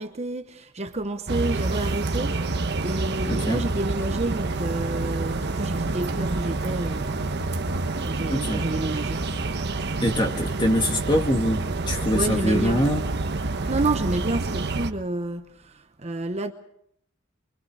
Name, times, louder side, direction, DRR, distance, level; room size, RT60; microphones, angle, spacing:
voice 1, 0.0-7.3 8.1-9.2 12.1-12.8 13.5-16.5, right 2 dB, 30° right, 0.9 m, -30 dB
sound 1, 1.3-14.9, right 2 dB, 55° right, 1.1 m, -28 dB
voice 2, 3.3-3.6 8.3-8.6 10.0-13.0, equal, 25° left, 2.1 m, -24 dB
24.5 x 24.0 x 4.8 m
head